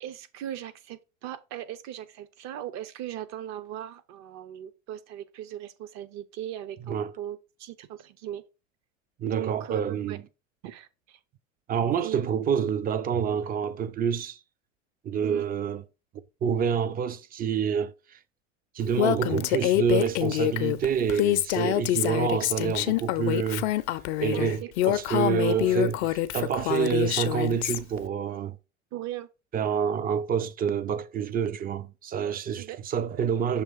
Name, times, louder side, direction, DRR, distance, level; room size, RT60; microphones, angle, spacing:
voice 1, 0.0-8.4 9.3-10.2 10.6-11.2 12.0-12.2 15.2-15.5 24.3-25.8 28.9-29.3 32.6-32.8, right 12 dB, 45° right, 0.9 m, -38 dB
voice 2, 9.2-10.2 11.7-14.4 15.0-15.8 16.4-18.2 18.7-23.7 24.2-28.6 29.5-33.6, right 7 dB, 25° right, 0.5 m, -27 dB
Female speech woman speaking, 19.0-27.8, left 15 dB, 60° left, 0.6 m, -26 dB
6.4 x 2.9 x 5.6 m
hypercardioid pair, 85°, 39 cm